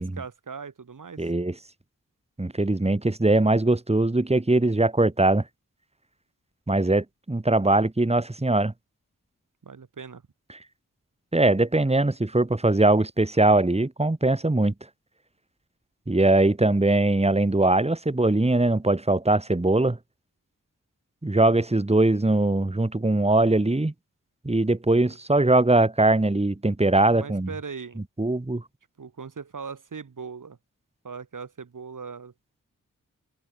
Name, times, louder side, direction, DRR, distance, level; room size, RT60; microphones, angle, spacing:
voice 1, 0.0-1.3 9.6-10.2 27.1-28.0 29.0-30.6 31.0-32.3, right 5 dB, 70° right, 4.5 m, -39 dB
voice 2, 1.2-1.5 2.4-5.4 6.7-8.7 11.3-14.7 16.1-20.0 21.2-23.9 24.4-27.5 28.2-28.6, right 2 dB, 20° right, 2.5 m, -21 dB
open air
cardioid pair, 50°, 33 cm